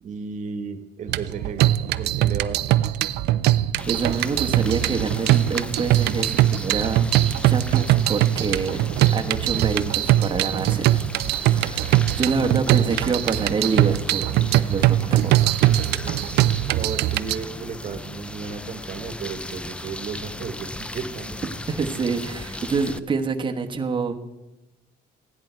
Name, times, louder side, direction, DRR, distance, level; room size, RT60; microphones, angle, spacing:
voice 1, 0.0-2.7 12.6-13.0 13.3-13.5 16.7-21.4, right 5 dB, 45° right, 8 dB, 1.4 m, -34 dB
sound 1, 1.1-17.4, right 14 dB, 75° right, 0.4 m, -21 dB
sound 2, 3.8-23.0, left 2 dB, 5° left, 0.4 m, -37 dB
voice 2, 3.9-7.1 7.4-8.8 9.1-11.0 11.3-15.5 21.7-24.2, right 5 dB, 30° right, 4 dB, 1.1 m, -27 dB
15.0 x 10.5 x 4.5 m, 1.0 s
cardioid pair, 110°, 17 cm